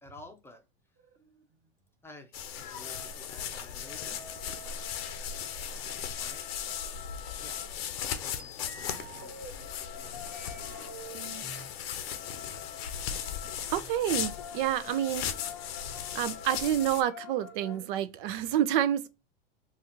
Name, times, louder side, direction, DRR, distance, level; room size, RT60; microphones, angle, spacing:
voice 1, 0.0-0.6 2.0-4.2 4.6-4.8 5.8-6.8 7.4-7.6 7.9-10.9, left 2 dB, 10° left, 0.6 m, -53 dB
sound 1, 1.0-1.7 5.4-6.7 7.6-9.5 10.0-11.7 12.5-13.9 14.4-14.5 14.8-16.1 16.6-16.7 16.9-17.9, right 4 dB, 35° right, 1.1 m, -50 dB
sound 2, 2.3-17.0, left 9 dB, 75° left, 0.8 m, -37 dB
sound 3, 2.5-3.2 3.6-7.8 9.2-17.8, left 8 dB, 45° left, 0.7 m, -48 dB
voice 2, 13.7-15.3 16.1-19.1, right 11 dB, 60° right, 0.5 m, -28 dB
4.1 x 2.4 x 2.9 m
supercardioid pair, 125°, 30 cm